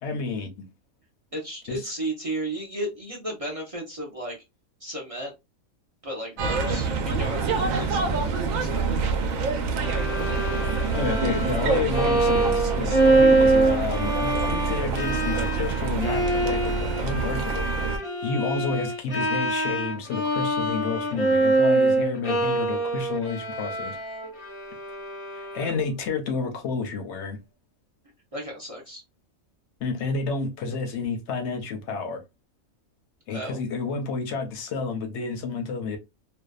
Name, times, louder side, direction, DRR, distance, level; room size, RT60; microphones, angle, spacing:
voice 1, 0.0-0.6 1.7-1.9 10.9-24.0 25.5-27.4 29.8-32.2 33.3-36.0, left 4 dB, 65° left, 0.8 m, -30 dB
voice 2, 1.3-4.4 4.8-5.3 6.0-8.2 8.6-8.9 25.6-25.7 28.3-29.0 33.3-33.6, right 1 dB, 45° right, 0.4 m, -34 dB
sound 1, 6.4-18.0, right 4 dB, 75° right, 0.9 m, -26 dB
Bowed string instrument, 9.8-25.9, right 2 dB, 30° left, 0.5 m, -25 dB
2.6 x 2.2 x 2.3 m
omnidirectional pair, 1.5 m